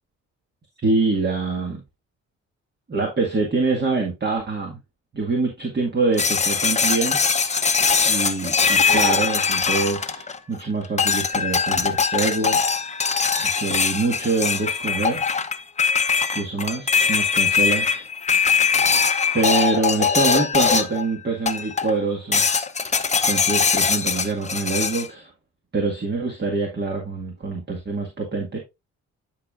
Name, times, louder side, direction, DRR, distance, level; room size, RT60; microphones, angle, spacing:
voice 1, 0.8-1.8 2.9-4.8 5.1-7.2 8.0-12.6 13.4-15.4 16.3-18.0 19.3-22.5 23.3-25.3 25.7-28.6, right 3 dB, 35° right, 2.0 m, -25 dB
sound 1, 6.2-10.6 11.0-21.1 21.5-22.0 22.3-25.1, left 5 dB, 25° left, 0.8 m, -21 dB
10.5 x 5.3 x 2.5 m
cardioid pair, 90°, 30 cm